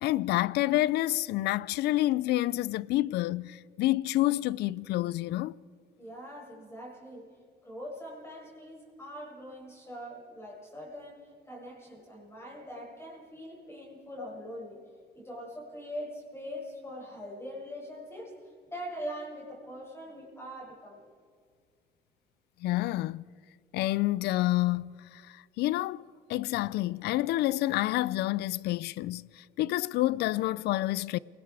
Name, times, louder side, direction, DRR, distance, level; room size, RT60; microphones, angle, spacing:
voice 1, 0.0-5.5 22.6-23.2 23.7-31.2, left 16 dB, 75° left, 0.5 m, -28 dB
voice 2, 6.0-7.3 7.6-14.8 15.1-21.1, equal, 15° left, 6.9 m, -42 dB
28.5 x 20.0 x 4.9 m
cardioid pair, 110°, 17 cm